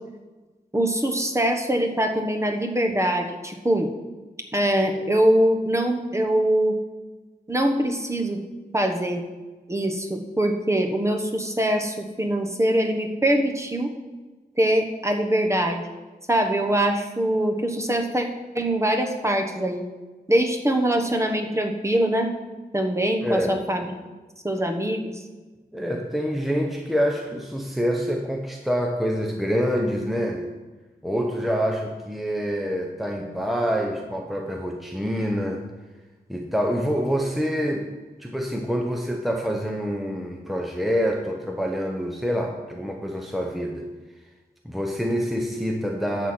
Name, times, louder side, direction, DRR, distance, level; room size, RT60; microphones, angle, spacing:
voice 1, 0.7-3.9 4.5-6.8 7.5-8.4 8.7-9.2 9.7-13.9 14.6-15.8 16.3-18.3 18.5-19.8 20.3-22.3 22.7-23.9 24.4-25.0, right 1 dB, 15° right, 3 dB, 1.2 m, -23 dB
voice 2, 23.2-23.6 25.7-30.5 31.0-35.7 36.3-37.9 38.2-43.9 44.6-46.3, equal, ahead, 1 dB, 0.9 m, -26 dB
11.0 x 4.4 x 7.6 m, 1.2 s
wide cardioid pair, 85°, 16 cm